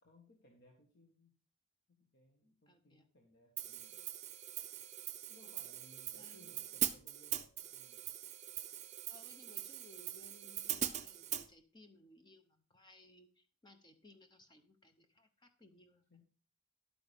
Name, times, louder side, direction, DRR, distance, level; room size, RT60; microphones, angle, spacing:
voice 1, 0.0-1.4 1.9-4.1 5.3-8.1 16.1-16.2, left 1 dB, 55° left, 0 dB, 1.6 m, -65 dB
voice 2, 2.7-3.1 6.2-6.7 9.1-16.1, left 1 dB, 20° left, 7 dB, 0.8 m, -62 dB
Hi-hat, 3.6-11.5, right 11 dB, 35° right, 0.5 m, -42 dB
11.5 x 8.6 x 3.5 m, 0.39 s
head